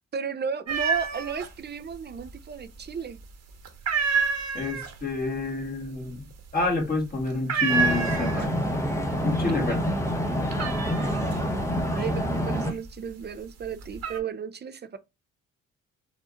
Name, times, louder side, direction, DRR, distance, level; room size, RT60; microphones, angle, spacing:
voice 1, 0.1-3.2 9.6-9.7 11.9-15.0, right 6 dB, 35° right, 0.6 m, -34 dB
sound 1, 0.7-1.5 1.8-2.6 2.9-3.3 3.6-8.7 9.1-9.6 9.9-13.1 13.6-14.2, right 5 dB, 60° right, 1.3 m, -28 dB
voice 2, 4.5-8.6 9.2-9.9, left 3 dB, 30° left, 2.0 m, -28 dB
sound 2, 7.7-12.7, equal, 10° left, 1.0 m, -27 dB
5.0 x 2.7 x 3.7 m
cardioid pair, 90°, 30 cm